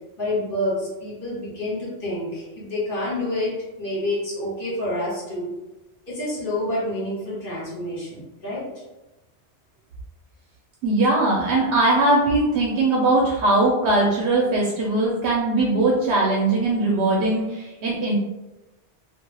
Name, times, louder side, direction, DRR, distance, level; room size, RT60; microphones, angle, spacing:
voice 1, 0.2-5.5 6.1-8.6, left 1 dB, 55° left, -7 dB, 1.3 m, -28 dB
voice 2, 10.8-18.2, right 2 dB, 80° right, -3 dB, 0.8 m, -20 dB
2.3 x 2.2 x 3.2 m, 1.0 s
omnidirectional pair, 1.1 m